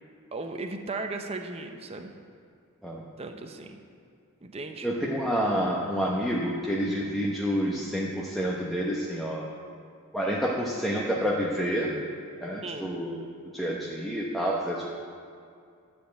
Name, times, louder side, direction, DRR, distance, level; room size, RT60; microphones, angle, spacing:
voice 1, 0.3-2.1 3.2-3.8 4.4-4.9 12.6-12.9, right 3 dB, 25° right, 4 dB, 0.7 m, -36 dB
voice 2, 4.8-9.4 10.1-11.9 12.4-13.3 13.5-14.9, equal, ahead, -5 dB, 0.9 m, -28 dB
11.5 x 5.2 x 8.0 m, 2.3 s
head